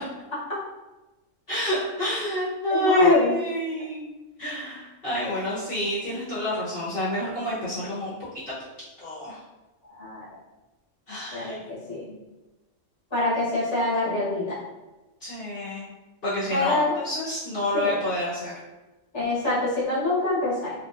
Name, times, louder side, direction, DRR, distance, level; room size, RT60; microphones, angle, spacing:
voice 1, 1.5-4.1 4.4-8.5 9.0-9.4 11.1-11.6 15.2-15.9 16.2-18.5, equal, 50° left, -10 dB, 1.0 m, -29 dB
voice 2, 2.7-3.3 10.0-10.2 11.3-12.1 13.1-14.6 16.5-17.0 17.7-18.0 19.1-20.7, left 2 dB, 20° left, -8 dB, 1.0 m, -24 dB
3.2 x 2.9 x 2.4 m, 1.1 s
omnidirectional pair, 1.4 m